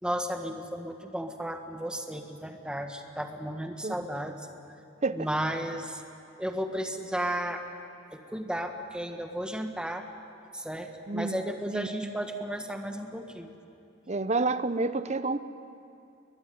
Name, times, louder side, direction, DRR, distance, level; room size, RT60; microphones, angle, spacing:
voice 1, 0.0-4.5 5.1-6.0 6.4-7.6 8.1-10.0 10.5-13.5, equal, 5° right, 5 dB, 1.5 m, -34 dB
voice 2, 11.1-11.4 11.7-11.9 14.1-15.4, right 3 dB, 35° right, 13 dB, 0.8 m, -29 dB
22.0 x 21.0 x 9.5 m, 2.6 s
head